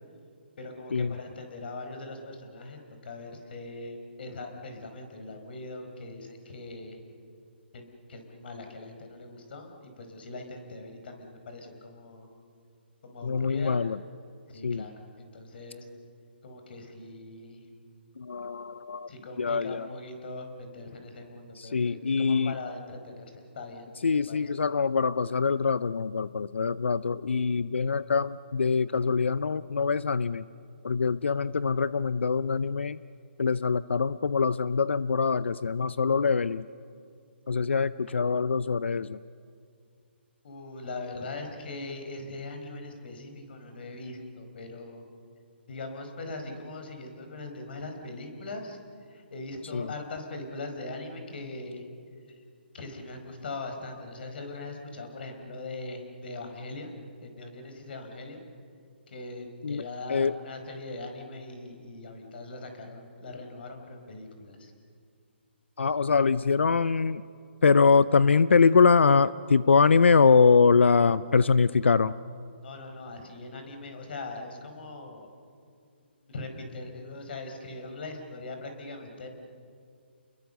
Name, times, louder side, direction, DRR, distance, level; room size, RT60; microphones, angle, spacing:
voice 1, 0.6-7.0 7.7-12.3 13.0-13.8 14.5-15.8 16.4-17.6 19.1-23.9 24.3-24.5 40.4-45.0 45.7-48.8 49.1-51.8 52.7-56.9 57.2-58.5 59.1-64.7 72.6-75.3 76.2-79.3, left 2 dB, 60° left, 5 dB, 4.8 m, -41 dB
voice 2, 13.2-14.0 14.6-14.8 18.2-19.1 19.4-19.9 21.6-22.5 24.0-30.4 30.8-33.0 33.4-36.7 37.5-39.2 49.7-49.9 59.6-59.8 60.1-60.4 65.8-67.2 67.6-72.1, left 5 dB, 85° left, 17 dB, 0.6 m, -23 dB
29.0 x 21.5 x 6.9 m, 2.3 s
hypercardioid pair, 150°, 6 cm